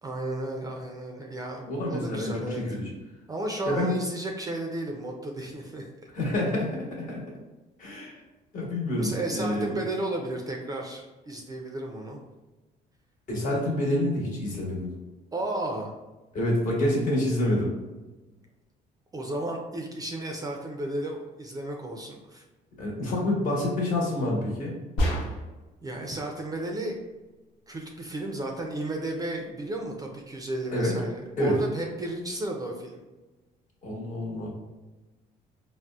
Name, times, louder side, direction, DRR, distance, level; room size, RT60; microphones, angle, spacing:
voice 1, 0.0-1.6 1.9-2.6 3.3-5.8 9.0-12.2 15.3-15.9 19.1-22.4 25.1-25.3 25.8-27.0 27.7-33.0, right 1 dB, 20° right, 1 dB, 0.4 m, -33 dB
voice 2, 1.7-2.9 3.6-3.9 6.1-7.2 7.8-8.2 8.5-9.8 13.3-14.9 16.3-17.7 22.8-24.7 30.7-31.0 31.4-31.6 33.8-34.5, left 1 dB, 50° left, -3 dB, 1.1 m, -27 dB
sound 1, 25.0-25.7, equal, 90° left, 0.8 m, -27 dB
3.9 x 2.1 x 2.3 m, 1.1 s
cardioid pair, 110°, 17 cm